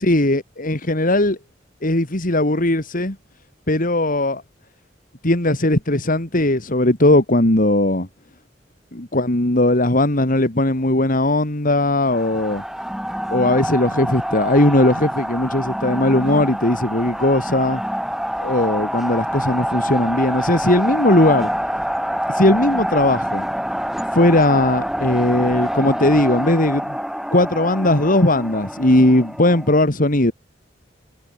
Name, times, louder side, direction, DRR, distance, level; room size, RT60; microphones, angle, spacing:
voice 1, 0.0-1.4 1.8-3.2 3.7-4.4 5.2-8.1 8.9-12.6 13.3-17.8 18.4-21.5 22.3-23.5 24.1-27.0 27.3-30.3, left 1 dB, 45° left, 2.8 m, -18 dB
sound 1, 12.1-29.8, equal, ahead, 3.3 m, -26 dB
head